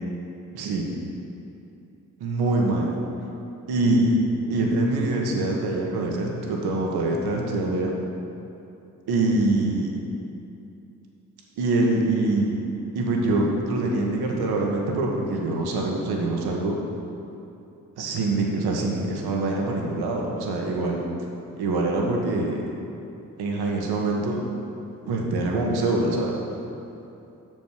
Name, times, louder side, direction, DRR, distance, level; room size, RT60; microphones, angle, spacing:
voice 1, 0.5-0.9 2.2-2.9 3.7-4.2 4.5-7.9 9.1-9.9 11.6-12.5 12.9-16.8 18.0-21.0 21.5-22.7 23.4-24.4 25.1-26.4, right 2 dB, 60° right, 0 dB, 1.6 m, -24 dB
7.8 x 7.1 x 6.5 m, 2.8 s
figure-of-eight pair, 40°, 42 cm